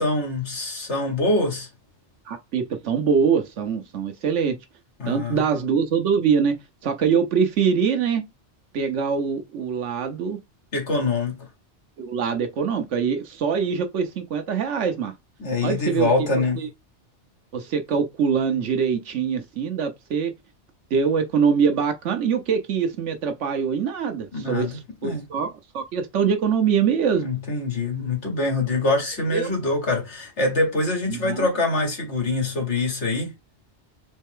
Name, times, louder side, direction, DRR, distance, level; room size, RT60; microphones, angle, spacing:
voice 1, 0.0-1.7 5.0-5.4 10.7-11.4 15.4-16.7 24.3-25.3 27.1-33.3, left 2 dB, 75° left, 2.1 m, -24 dB
voice 2, 2.3-4.6 5.0-6.6 6.8-8.3 8.7-10.4 12.0-15.1 15.6-16.3 16.5-16.7 17.5-20.3 20.9-27.3 29.3-29.5 31.1-31.5, right 6 dB, 90° right, 1.2 m, -23 dB
4.3 x 3.2 x 3.6 m
omnidirectional pair, 1.2 m